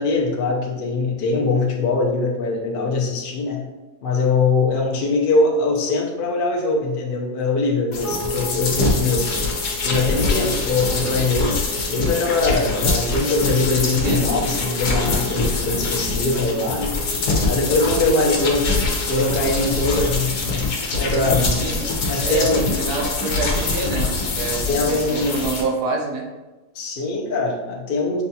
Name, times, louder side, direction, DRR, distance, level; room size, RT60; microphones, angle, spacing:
voice 1, 0.0-3.7 4.0-17.0 17.5-21.8 22.1-22.7 24.7-25.5 26.7-28.2, left 3 dB, 50° left, -1 dB, 0.6 m, -22 dB
sound 1, 7.9-25.6, left 3 dB, 80° left, 1.3 m, -24 dB
sound 2, 8.0-20.6, equal, 35° right, 0.7 m, -36 dB
voice 2, 22.2-26.3, right 3 dB, 75° right, 1 dB, 1.3 m, -26 dB
5.9 x 2.4 x 2.7 m, 1.1 s
omnidirectional pair, 1.7 m